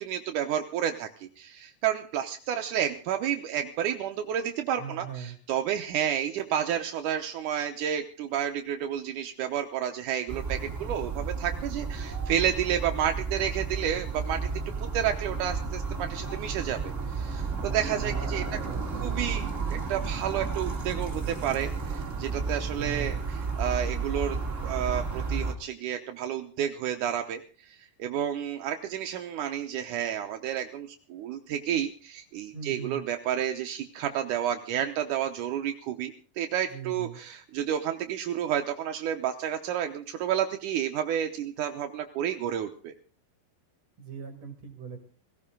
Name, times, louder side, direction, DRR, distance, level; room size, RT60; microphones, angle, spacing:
voice 1, 0.0-14.5 14.8-18.4 19.0-23.2 23.6-42.9, right 9 dB, 75° right, 5 dB, 1.9 m, -31 dB
voice 2, 4.8-5.4 17.9-19.1 22.7-23.2 32.5-33.0 36.7-37.2 44.0-45.0, right 7 dB, 45° right, 5 dB, 2.7 m, -40 dB
sound 1, 10.3-25.5, right 4 dB, 25° right, 1.8 m, -32 dB
17.5 x 17.0 x 3.8 m, 0.42 s
omnidirectional pair, 4.7 m